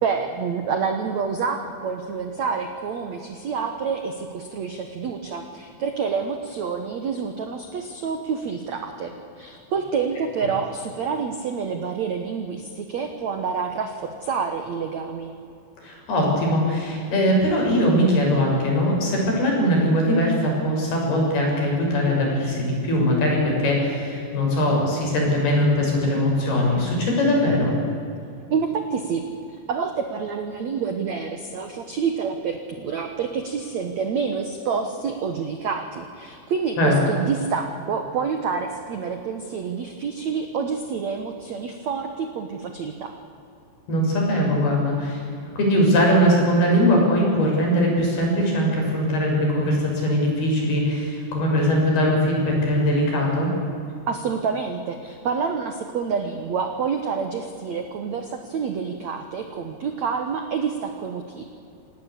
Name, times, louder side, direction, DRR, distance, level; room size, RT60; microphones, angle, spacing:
voice 1, 0.0-15.3 28.5-29.2 29.7-43.2 54.1-61.4, right 6 dB, 80° right, 6 dB, 1.5 m, -28 dB
voice 2, 15.8-27.7 36.8-37.0 43.9-45.2 45.6-53.5, equal, 55° left, -1 dB, 8.1 m, -21 dB
27.5 x 18.5 x 8.4 m, 2.7 s
omnidirectional pair, 5.5 m